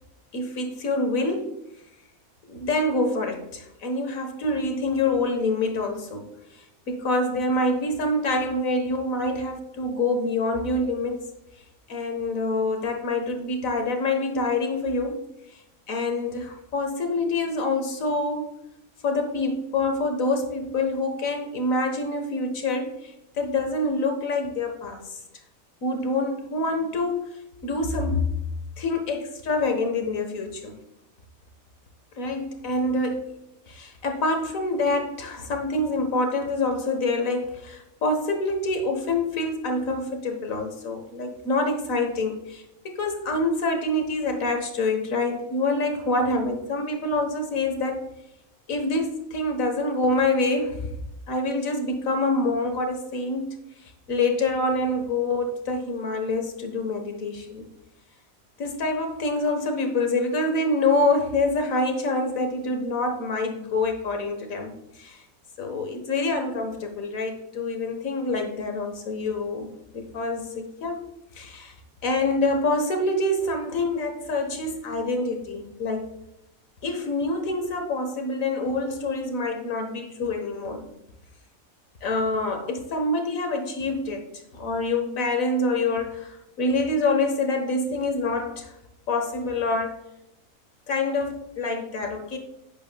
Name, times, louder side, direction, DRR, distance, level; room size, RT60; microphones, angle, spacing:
voice 1, 0.3-1.6 2.5-6.3 6.9-11.2 11.9-15.2 15.9-18.6 19.0-25.2 25.8-27.3 27.6-28.2 28.8-30.7 32.2-33.2 33.7-48.0 48.7-51.0 51.3-53.5 54.1-57.7 58.6-65.2 65.6-71.7 72.0-76.0 76.8-80.9 82.0-84.3 84.5-88.7 89.1-90.0 90.9-92.4, left 2 dB, 65° left, 4 dB, 1.7 m, -26 dB
10.5 x 8.7 x 2.3 m, 0.85 s
omnidirectional pair, 1.5 m